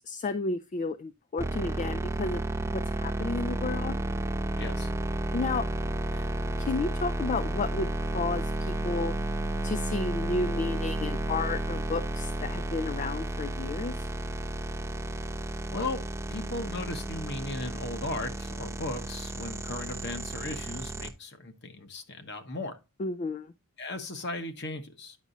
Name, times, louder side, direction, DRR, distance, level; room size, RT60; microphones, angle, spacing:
voice 1, 0.1-2.4 2.7-4.0 5.3-5.7 6.1-6.3 6.6-9.1 9.6-14.1 23.0-23.5, left 3 dB, 35° left, 0.3 m, -32 dB
sound 1, 1.4-21.1, right 1 dB, 15° right, 0.8 m, -32 dB
voice 2, 4.6-4.9 15.7-16.0 16.3-22.8 23.8-25.2, left 2 dB, 55° left, 1.2 m, -36 dB
9.5 x 6.0 x 2.7 m
head